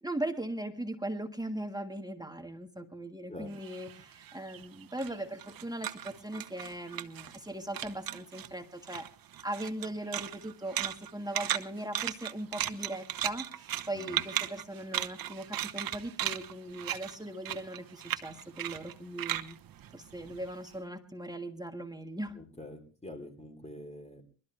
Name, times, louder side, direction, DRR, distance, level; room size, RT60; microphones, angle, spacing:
voice 1, 0.0-9.1 9.4-13.5 13.9-19.6 19.9-22.4, right 1 dB, 10° right, 6 dB, 1.6 m, -39 dB
sound 1, 3.5-7.5 7.7-8.5 8.8-20.7, right 11 dB, 45° right, 1.1 m, -37 dB
voice 2, 22.4-24.2, left 1 dB, 15° left, 6 dB, 3.6 m, -45 dB
22.5 x 13.0 x 3.4 m, 0.38 s
supercardioid pair, 75°, 47 cm